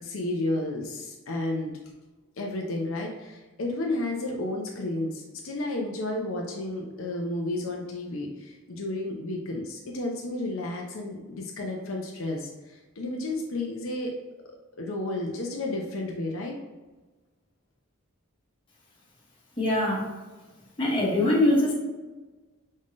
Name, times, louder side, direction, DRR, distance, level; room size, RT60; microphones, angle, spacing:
voice 1, 0.0-1.7 2.4-14.1 14.8-16.6, left 2 dB, 70° left, 0 dB, 0.6 m, -32 dB
voice 2, 19.6-20.1 20.8-21.7, left 1 dB, 25° left, -5 dB, 1.3 m, -22 dB
5.2 x 3.6 x 2.5 m, 1.2 s
head